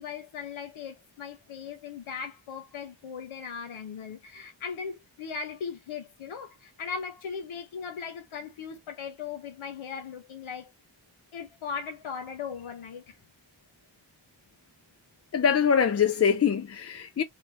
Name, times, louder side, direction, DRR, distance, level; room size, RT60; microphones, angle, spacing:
voice 1, 0.0-10.7 11.3-13.2, left 6 dB, 80° left, 0.6 m, -38 dB
voice 2, 15.3-17.2, left 7 dB, 35° left, 0.4 m, -23 dB
2.5 x 2.0 x 2.9 m
cardioid pair, 45°, 48 cm